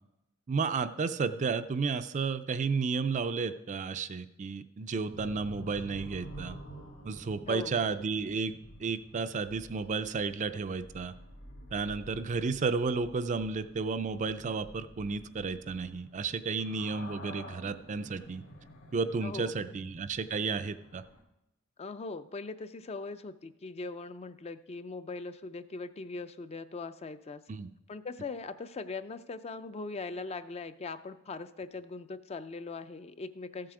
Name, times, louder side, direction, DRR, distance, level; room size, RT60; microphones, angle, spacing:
voice 1, 0.5-6.6 7.0-11.1 11.7-18.4 18.9-21.0 27.5-27.7, right 4 dB, 35° right, 11 dB, 0.4 m, -32 dB
sound 1, 5.1-21.2, equal, 70° left, 2.2 m, -50 dB
voice 2, 7.5-7.9 19.2-19.5 21.8-27.4 27.9-33.7, left 3 dB, 30° left, 12 dB, 0.4 m, -40 dB
14.0 x 7.6 x 4.8 m, 0.90 s
head